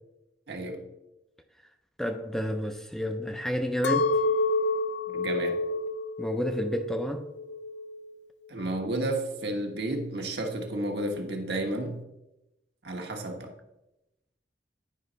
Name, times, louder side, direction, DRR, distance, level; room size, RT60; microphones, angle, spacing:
voice 1, 0.5-0.8 5.1-5.6 8.5-12.0 12.8-13.5, right 1 dB, 70° right, 2 dB, 1.3 m, -32 dB
voice 2, 2.0-4.2 6.2-7.3, equal, ahead, 5 dB, 0.4 m, -30 dB
Chink clink, 3.8-8.1 8.6-9.2, left 2 dB, 80° left, 0.4 m, -29 dB
9.7 x 5.2 x 3.9 m, 0.93 s
head